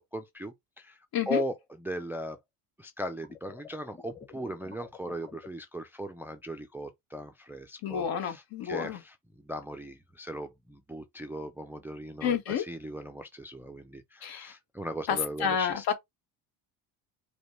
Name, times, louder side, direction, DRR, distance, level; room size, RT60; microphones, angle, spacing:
voice 1, 0.0-2.4 2.8-15.8, equal, 5° right, 0.4 m, -38 dB
sound 1, 3.2-5.5, left 4 dB, 10° left, 1.1 m, -48 dB
voice 2, 7.8-9.0 12.2-12.6 14.2-14.5 15.1-15.9, left 8 dB, 65° left, 1.5 m, -29 dB
5.0 x 2.3 x 3.1 m
cardioid pair, 110°, 40 cm